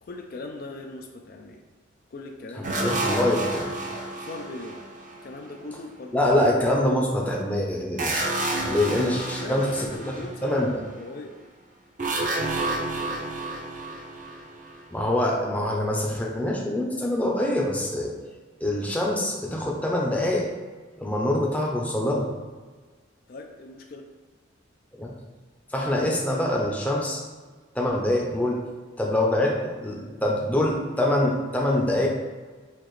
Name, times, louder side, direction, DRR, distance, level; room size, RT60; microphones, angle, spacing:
voice 1, 0.0-1.6 2.1-2.9 4.2-4.8 5.2-6.4 8.8-11.3 23.3-24.1, left 2 dB, 50° left, 3 dB, 0.4 m, -39 dB
sound 1, 2.6-5.6 8.0-10.7 12.0-15.1, right 2 dB, 40° right, 0.6 m, -30 dB
voice 2, 2.8-3.7 6.1-8.3 8.7-10.2 10.4-10.8 14.9-18.1 18.6-20.5 21.0-22.3 25.0-25.1 25.7-27.2 27.7-28.6 29.0-32.1, left 1 dB, 10° left, -2 dB, 0.6 m, -25 dB
5.7 x 2.9 x 3.1 m, 1.4 s
head